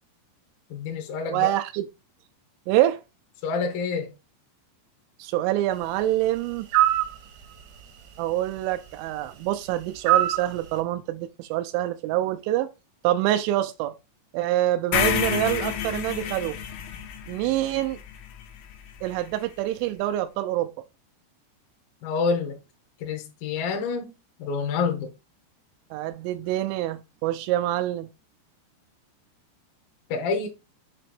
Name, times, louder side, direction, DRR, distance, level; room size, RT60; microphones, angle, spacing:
voice 1, 0.7-1.5 3.4-4.1 22.0-22.6 23.0-24.1 24.4-25.1 30.1-30.5, left 5 dB, 70° left, 2.3 m, -27 dB
voice 2, 1.3-1.9 2.7-3.0 5.2-6.7 8.2-12.7 13.0-13.9 14.3-16.6 17.3-18.0 19.0-20.7 25.9-28.1, right 14 dB, 85° right, 2.9 m, -26 dB
sound 1, 6.7-7.1 10.1-10.5, right 13 dB, 70° right, 2.1 m, -20 dB
sound 2, 14.9-19.1, left 9 dB, 85° left, 3.4 m, -29 dB
7.5 x 3.1 x 4.2 m
omnidirectional pair, 5.3 m